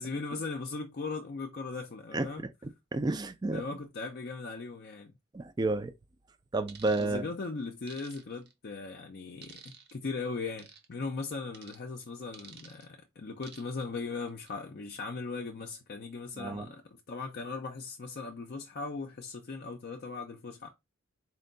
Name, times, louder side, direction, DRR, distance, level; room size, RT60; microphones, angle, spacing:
voice 1, 0.0-2.4 3.5-5.1 7.0-20.7, left 4 dB, 45° left, 0.5 m, -38 dB
voice 2, 2.9-3.6 5.3-5.9 6.5-7.2 16.4-16.7, right 2 dB, 20° right, 0.3 m, -30 dB
sound 1, 6.7-7.1 7.9-8.5 9.4-9.9 10.6-10.9 11.5-11.8 12.3-12.8 13.4-13.8 14.3-14.5, right 6 dB, 50° right, 0.7 m, -51 dB
4.4 x 2.2 x 3.8 m
head